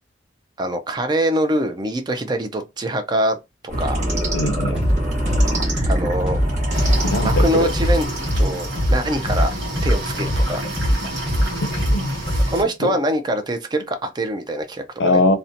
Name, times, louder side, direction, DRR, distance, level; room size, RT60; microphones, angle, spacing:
voice 1, 0.6-3.4 3.8-4.0 5.9-6.4 7.2-8.1 8.3-9.5 9.8-10.7 12.5-15.2, right 1 dB, 25° right, 0.3 m, -23 dB
sound 1, 3.7-9.7, right 1 dB, 40° right, 0.9 m, -25 dB
voice 2, 4.3-4.8 7.0-7.7 11.6-12.2 12.8-12.9 15.0-15.4, left 2 dB, 80° left, 0.5 m, -21 dB
sound 2, 4.8-4.9 5.3-8.9 9.3-12.7, equal, 5° right, 0.9 m, -20 dB
sound 3, 6.7-12.6, equal, 80° right, 1.0 m, -28 dB
2.6 x 2.1 x 2.6 m
head